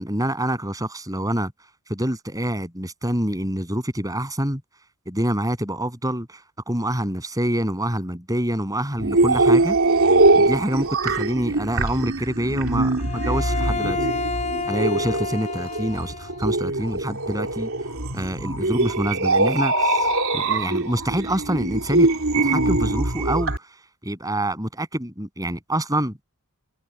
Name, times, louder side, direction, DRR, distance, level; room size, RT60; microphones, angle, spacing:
voice 1, 0.0-1.5 1.9-4.6 5.1-9.8 10.3-14.0 14.7-17.7 18.1-22.1 22.4-23.7 24.0-26.2, right 1 dB, 15° right, 7.6 m, -26 dB
sound 1, 9.0-23.6, right 2 dB, 65° right, 3.6 m, -22 dB
Bowed string instrument, 13.0-16.4, left 4 dB, 30° left, 4.7 m, -29 dB
head